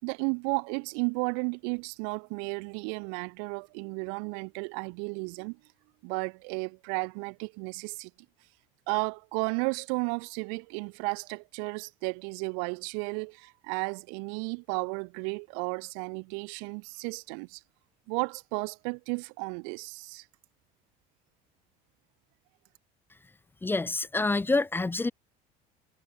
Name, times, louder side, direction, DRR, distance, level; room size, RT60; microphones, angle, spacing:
voice 1, 0.0-5.6 6.0-8.1 8.9-17.6 18.1-20.2, right 40 dB or more, 85° right, 4.4 m, -33 dB
voice 2, 23.6-25.1, left 3 dB, 10° left, 1.2 m, -27 dB
cardioid pair, 125°, 17 cm